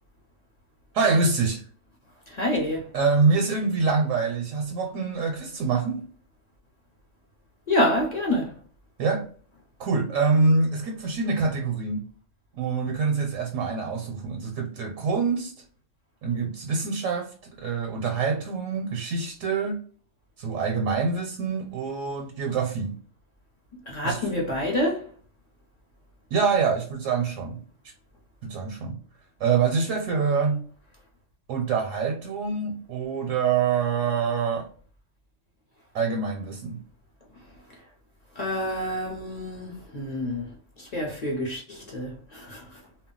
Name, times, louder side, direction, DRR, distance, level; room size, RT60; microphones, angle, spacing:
voice 1, 0.9-1.7 2.9-6.0 9.0-9.3 9.8-12.1 12.5-15.5 16.2-19.8 20.4-23.0 24.0-24.3 26.3-27.6 28.4-29.0 29.4-30.7 31.5-34.7 35.9-36.8, right 4 dB, 85° right, 0.9 m, -25 dB
voice 2, 2.3-2.9 7.7-8.5 23.9-25.1 38.4-40.5 40.8-42.7, left 1 dB, 40° left, 0.6 m, -27 dB
2.2 x 2.1 x 3.7 m
omnidirectional pair, 1.3 m